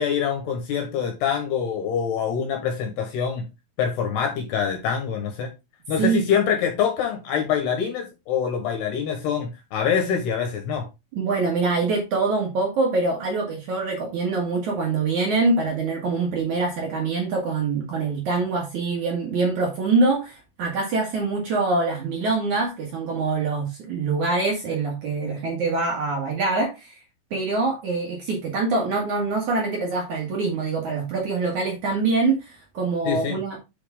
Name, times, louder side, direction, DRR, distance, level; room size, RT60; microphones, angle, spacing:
voice 1, 0.0-3.4 3.8-5.5 5.9-10.9 33.1-33.4, left 7 dB, 70° left, 5 dB, 2.8 m, -25 dB
voice 2, 11.1-27.0 27.3-33.6, right 3 dB, 60° right, -1 dB, 2.1 m, -24 dB
8.3 x 5.3 x 3.5 m, 0.25 s
omnidirectional pair, 5.7 m